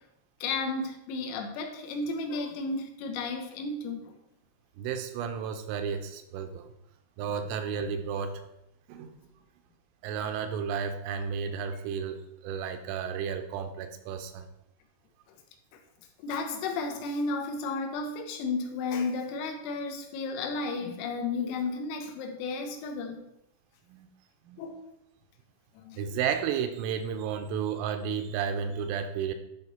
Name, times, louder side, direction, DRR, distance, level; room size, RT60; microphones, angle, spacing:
voice 1, 0.4-4.1 16.2-23.2 24.6-24.8 25.8-26.0, left 3 dB, 85° left, 4 dB, 3.8 m, -33 dB
voice 2, 4.8-6.7 7.2-8.4 8.9-9.2 10.0-14.4 23.9-24.1 24.5-24.7 26.0-29.3, right 7 dB, 85° right, 7 dB, 3.1 m, -32 dB
12.0 x 4.9 x 4.2 m, 0.83 s
omnidirectional pair, 6.0 m